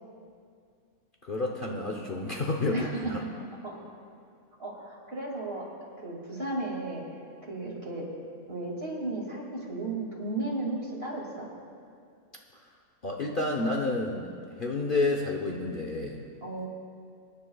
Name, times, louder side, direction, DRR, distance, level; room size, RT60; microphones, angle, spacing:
voice 1, 1.2-3.2 13.0-14.3 14.6-16.2, left 2 dB, 45° left, 0 dB, 0.9 m, -30 dB
voice 2, 2.7-3.3 3.6-3.8 4.6-5.7 6.0-7.0 7.4-8.1 8.5-11.5 16.4-16.7, right 2 dB, 45° right, -3 dB, 2.6 m, -34 dB
24.5 x 10.5 x 2.3 m, 2.4 s
omnidirectional pair, 1.5 m